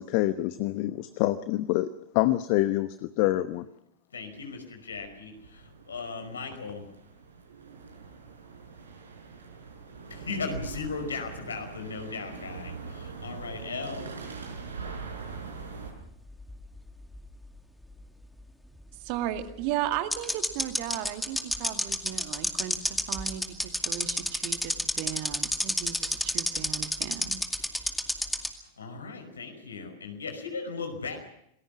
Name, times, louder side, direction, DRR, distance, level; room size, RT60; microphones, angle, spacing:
voice 1, 0.0-1.9 2.1-3.7, left 16 dB, 45° left, 13 dB, 1.0 m, -26 dB
voice 2, 4.1-6.8 10.1-14.1 28.8-31.2, left 4 dB, 70° left, 6 dB, 5.4 m, -37 dB
sound 1, 4.3-15.9, right 4 dB, 75° right, 5.9 m, -42 dB
sound 2, 15.6-17.2 17.4-17.5 19.3-19.4 20.1-28.5, left 1 dB, 5° left, 2.3 m, -28 dB
voice 3, 19.0-27.4, right 12 dB, 45° right, 8 dB, 2.2 m, -35 dB
28.0 x 20.5 x 6.0 m, 0.76 s
figure-of-eight pair, 90°, 0 cm